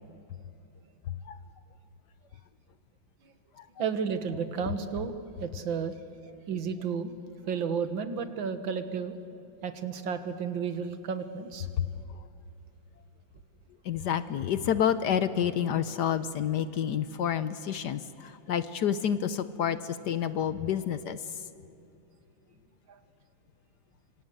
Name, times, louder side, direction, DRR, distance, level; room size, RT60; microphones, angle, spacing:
voice 1, 1.1-1.4 3.6-3.7 11.8-11.9 13.8-21.2, left 9 dB, 65° left, 13 dB, 1.3 m, -29 dB
voice 2, 3.8-5.9 6.5-7.1 7.4-9.2 9.6-11.7 22.9-23.0, right 6 dB, 75° right, 10 dB, 2.1 m, -32 dB
26.0 x 25.5 x 8.0 m, 2.7 s
omnidirectional pair, 2.1 m